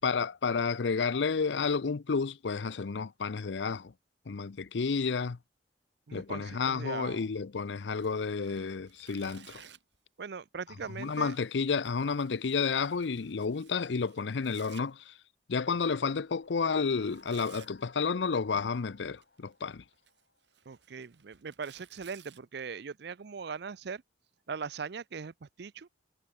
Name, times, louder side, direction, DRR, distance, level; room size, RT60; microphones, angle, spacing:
voice 1, 0.0-3.9 4.3-5.4 6.1-9.6 11.0-15.1 15.5-19.8, left 5 dB, 85° left, 0.6 m, -31 dB
voice 2, 6.1-7.3 10.2-11.3 20.7-24.0 24.5-25.9, right 5 dB, 70° right, 0.5 m, -40 dB
Tearing, 7.9-10.0 10.8-14.8 16.9-17.7 19.0-19.5 19.9-22.4, right 9 dB, 85° right, 5.5 m, -57 dB
sound 1, 15.9-20.5, left 4 dB, 70° left, 7.5 m, -61 dB
head